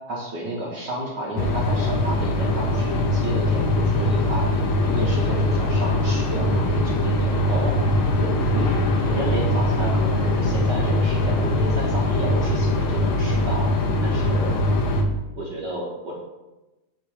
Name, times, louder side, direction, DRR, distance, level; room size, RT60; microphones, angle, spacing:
voice 1, 0.1-4.5 4.8-7.8 8.2-8.7 9.0-13.7 14.0-14.5 15.4-16.2, right 1 dB, 65° right, -4 dB, 1.1 m, -31 dB
sound 1, 1.4-15.0, left 1 dB, 85° left, 1.1 m, -22 dB
sound 2, 4.7-11.3, equal, 25° right, 0.8 m, -42 dB
8.3 x 4.0 x 4.8 m, 1.1 s
omnidirectional pair, 3.5 m